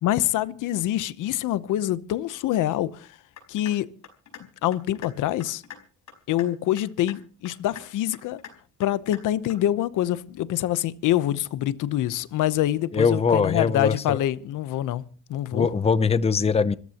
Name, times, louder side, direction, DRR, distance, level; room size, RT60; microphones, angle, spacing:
voice 1, 0.0-3.1 3.5-3.9 4.6-5.6 6.3-8.4 8.8-15.0 15.3-15.7, left 13 dB, 85° left, 0.9 m, -25 dB
sound 1, 3.4-3.7 4.0-4.4 4.7-5.1 5.4-5.8 6.1-6.5 6.8-7.2 7.4-7.8 8.1-8.5 8.8-9.2 9.5-9.6, left 9 dB, 65° left, 4.9 m, -42 dB
voice 2, 12.9-14.2 15.5-16.8, left 5 dB, 20° left, 0.7 m, -22 dB
26.0 x 14.5 x 3.0 m
cardioid pair, 90°, 30 cm